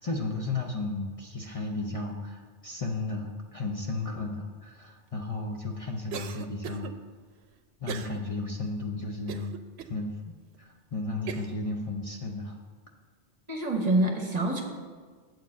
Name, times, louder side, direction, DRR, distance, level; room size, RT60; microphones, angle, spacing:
voice 1, 0.0-6.9 7.8-9.5 9.9-10.1 10.6-12.6, left 3 dB, 40° left, 1 dB, 0.6 m, -34 dB
Cough, 6.1-6.9 7.9-8.2 8.6-8.7 9.3-9.9 10.5-10.6 11.3-11.6, right 8 dB, 85° right, 0.8 m, -38 dB
voice 2, 13.5-14.6, right 2 dB, 40° right, 2 dB, 1.1 m, -26 dB
7.9 x 4.7 x 7.2 m, 1.5 s
omnidirectional pair, 1.1 m